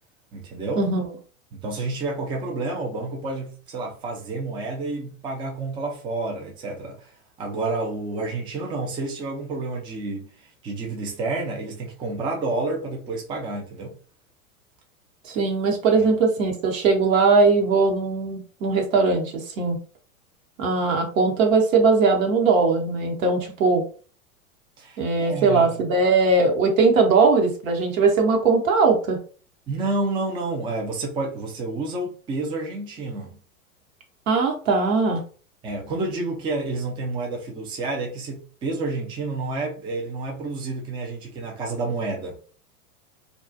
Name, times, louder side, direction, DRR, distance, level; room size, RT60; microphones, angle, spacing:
voice 1, 0.3-0.9 1.5-7.1 7.4-14.0 15.9-16.0 24.8-25.8 29.7-33.4 35.6-42.3, right 3 dB, 10° right, 0.4 m, -29 dB
voice 2, 15.2-19.8 20.6-23.8 25.0-29.2 34.3-35.2, right 4 dB, 65° right, 1.0 m, -20 dB
2.3 x 2.3 x 2.5 m
hypercardioid pair, 105°, 43 cm